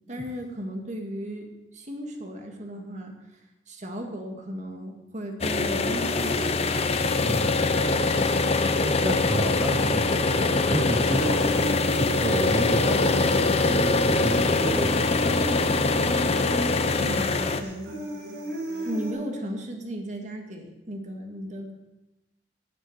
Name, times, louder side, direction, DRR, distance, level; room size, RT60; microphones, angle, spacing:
voice 1, 0.1-3.1 3.7-6.8 17.0-17.9 18.8-21.7, right 1 dB, 45° right, 3 dB, 2.0 m, -35 dB
sound 1, 5.4-17.6, left 3 dB, 35° left, 0.7 m, -23 dB
voice 2, 7.2-7.6 8.8-16.0, right 1 dB, 20° right, 3 dB, 0.7 m, -31 dB
Human voice, 11.1-19.1, equal, 60° right, 4.2 m, -34 dB
10.5 x 8.1 x 7.9 m, 0.99 s
head